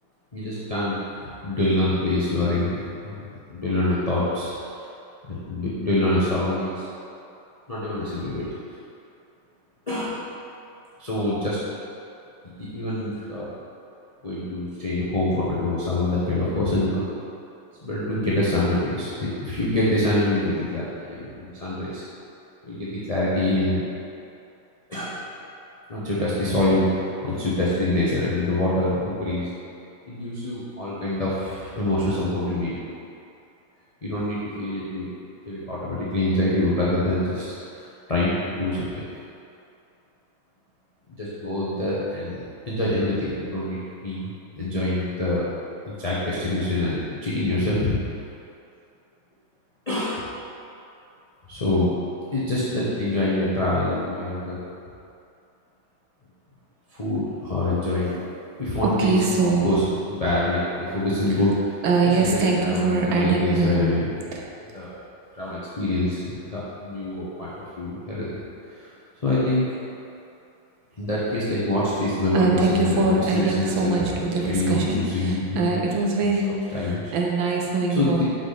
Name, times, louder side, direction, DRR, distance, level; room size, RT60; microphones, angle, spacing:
voice 1, 0.3-2.8 3.0-3.2 3.5-4.5 5.3-6.8 7.7-8.4 9.9-10.2 11.0-11.6 12.6-13.5 14.2-17.0 17.8-22.0 22.6-23.8 24.9-25.2 25.9-29.5 30.1-32.8 34.0-35.1 35.5-37.4 37.7-38.9 41.2-45.4 45.8-48.0 49.9-50.3 51.5-51.9 52.3-54.6 56.9-58.2 58.6-61.8 62.0-64.2 64.7-64.9 65.4-68.3 68.7-68.9 69.2-69.6 71.0-75.8 76.2-77.1 78.0-78.2, left 1 dB, 75° left, -9 dB, 0.3 m, -25 dB
voice 2, 58.8-59.7 61.8-63.9 64.3-64.4 72.3-78.2, right 3 dB, 75° right, -1 dB, 1.5 m, -23 dB
5.9 x 5.0 x 4.0 m, 2.6 s
omnidirectional pair, 2.3 m